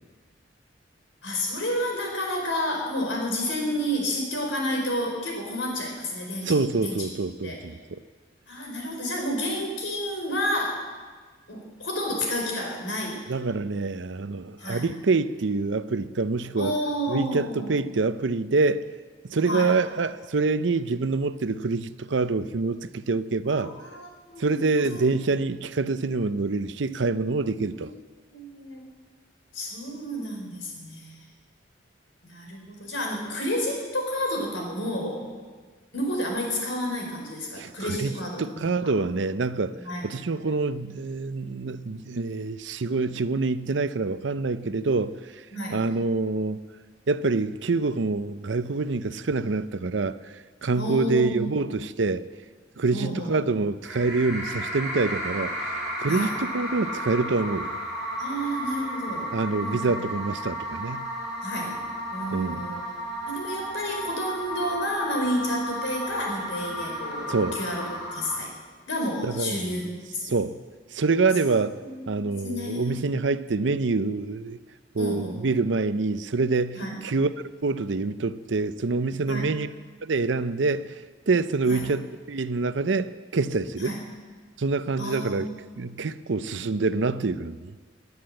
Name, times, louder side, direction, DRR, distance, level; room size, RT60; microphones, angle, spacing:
voice 1, 1.2-7.1 7.4-7.6 8.5-10.9 11.5-13.2 14.6-14.9 16.6-17.8 19.5-19.7 23.5-25.0 27.7-27.9 28.3-28.8 29.5-31.2 32.2-35.2 35.9-38.7 39.8-40.1 45.5-45.8 50.7-51.5 52.9-53.4 56.1-56.4 58.2-59.3 59.6-59.9 61.4-61.8 62.1-62.8 63.3-68.5 68.9-70.3 71.4-71.5 71.8-73.1 75.0-75.4 76.7-77.1 79.3-79.5 81.7-81.8 83.8-84.0 85.0-85.5, equal, 80° left, 4.5 m, -30 dB
voice 2, 6.4-8.0 13.3-16.7 17.1-18.8 19.3-23.7 24.4-27.9 37.6-38.1 38.4-39.8 40.0-45.5 45.7-46.6 47.1-52.2 52.8-57.8 59.3-61.1 62.3-62.6 67.3-67.6 69.2-69.8 70.2-70.6 70.9-71.8 72.1-74.6 74.9-77.3 77.6-79.7 80.0-83.9 84.6-85.5 85.8-87.7, right 3 dB, 75° right, 0.6 m, -26 dB
sound 1, 53.8-68.4, equal, 5° right, 5.8 m, -33 dB
19.0 x 9.7 x 7.8 m
head